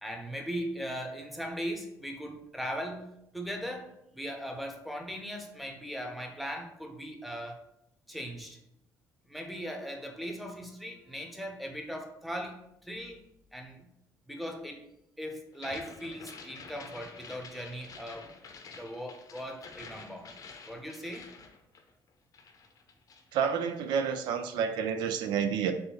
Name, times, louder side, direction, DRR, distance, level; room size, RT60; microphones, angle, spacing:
voice 1, 0.0-7.6 8.1-8.6 9.3-13.2 13.5-13.9 14.3-14.9 15.2-18.3 18.8-20.3 20.7-21.3, equal, ahead, 2 dB, 0.8 m, -39 dB
sound 1, 15.5-22.1 22.3-23.3, left 4 dB, 50° left, 0.7 m, -49 dB
voice 2, 23.3-25.7, right 7 dB, 75° right, 8 dB, 0.4 m, -29 dB
4.3 x 3.1 x 3.0 m, 0.76 s
supercardioid pair, 85°, 8 cm